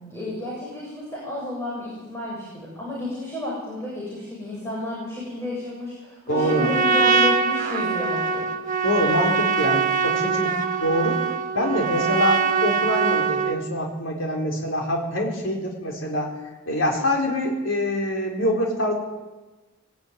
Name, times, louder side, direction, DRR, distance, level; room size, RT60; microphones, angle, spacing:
voice 1, 0.0-8.5, left 1 dB, 15° left, -6 dB, 7.6 m, -31 dB
voice 2, 6.3-6.7 8.8-11.3 11.5-16.3 16.7-18.9, equal, 70° left, 1 dB, 4.5 m, -25 dB
Trumpet, 6.3-13.6, right 5 dB, 40° right, 1.6 m, -23 dB
21.0 x 19.0 x 9.5 m, 1.2 s
head